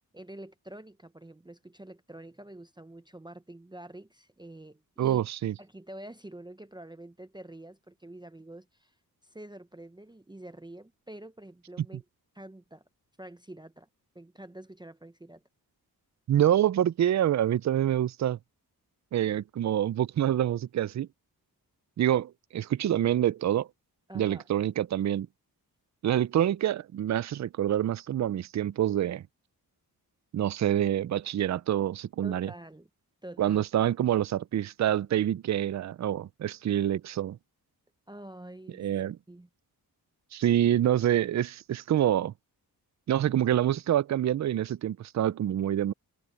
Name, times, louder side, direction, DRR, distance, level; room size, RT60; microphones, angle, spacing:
voice 1, 0.0-5.2 5.6-8.9 9.2-12.0 12.3-12.8 13.2-13.9 14.1-15.4 24.1-24.5 32.2-32.9 33.2-33.7 38.1-38.9 39.3-39.5, right 1 dB, 10° right, 0.8 m, -47 dB
voice 2, 5.0-5.5 16.3-18.4 19.1-21.1 22.0-23.7 24.1-25.3 26.0-29.2 30.3-32.5 33.4-37.4 38.8-39.2 40.3-42.3 43.1-45.9, right 11 dB, 50° right, 0.4 m, -26 dB
wide cardioid pair, 95°, 38 cm